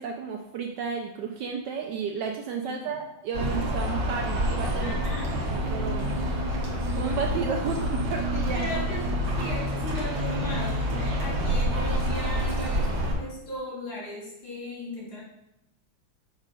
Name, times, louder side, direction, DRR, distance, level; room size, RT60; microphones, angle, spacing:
voice 1, 0.0-5.0 5.5-6.2 6.9-8.6, right 5 dB, 75° right, 2 dB, 1.0 m, -32 dB
voice 2, 2.6-3.0 4.8-5.4 8.5-12.9 13.2-15.2, left 1 dB, 80° left, -5 dB, 3.3 m, -37 dB
sound 1, 3.3-13.1, equal, 55° right, 1.6 m, -27 dB
6.4 x 3.2 x 5.2 m, 0.84 s
omnidirectional pair, 2.3 m